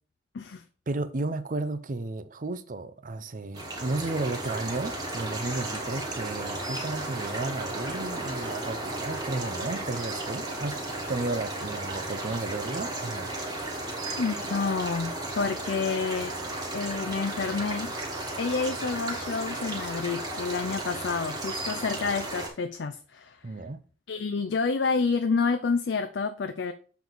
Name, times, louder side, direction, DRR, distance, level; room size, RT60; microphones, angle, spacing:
voice 1, 0.9-13.3 23.4-23.8, right 2 dB, 45° right, 0.6 m, -33 dB
sound 1, 3.5-22.5, right 2 dB, 20° right, 1.5 m, -34 dB
voice 2, 14.2-16.3 16.7-18.0 18.4-23.4 24.1-26.7, left 4 dB, 70° left, 0.5 m, -29 dB
7.1 x 4.0 x 4.6 m
head